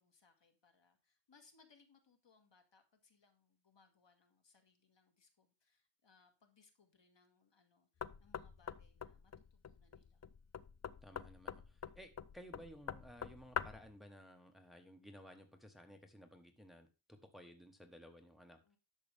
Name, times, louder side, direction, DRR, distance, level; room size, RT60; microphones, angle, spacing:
voice 1, 0.0-10.3 18.6-18.8, left 4 dB, 65° left, 5 dB, 1.9 m, -71 dB
Knock, 8.0-13.9, left 7 dB, 35° left, 0.5 m, -46 dB
voice 2, 11.0-18.6, equal, ahead, 5 dB, 1.3 m, -57 dB
11.0 x 6.7 x 3.5 m, 0.31 s
wide cardioid pair, 105°, 46 cm